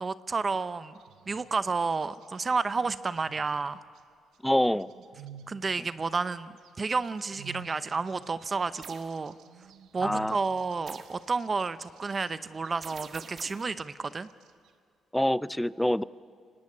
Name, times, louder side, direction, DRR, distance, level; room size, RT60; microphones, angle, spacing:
voice 1, 0.0-0.9 1.3-3.8 5.5-9.3 9.9-14.3, right 4 dB, 35° right, 14 dB, 0.7 m, -31 dB
sound 1, 1.0-1.6 1.9-2.4 2.8-4.0 4.5-5.9 6.6-12.3 12.6-13.3 13.8-14.7, right 8 dB, 80° right, 1.2 m, -51 dB
voice 2, 4.4-4.9 10.0-10.4 15.1-16.0, left 1 dB, 5° left, 17 dB, 0.5 m, -26 dB
sound 2, 8.8-9.1 10.9-11.2 12.8-13.7, right 6 dB, 55° right, 1.6 m, -45 dB
24.5 x 19.5 x 8.5 m, 2.2 s
cardioid pair, 85°, 0 cm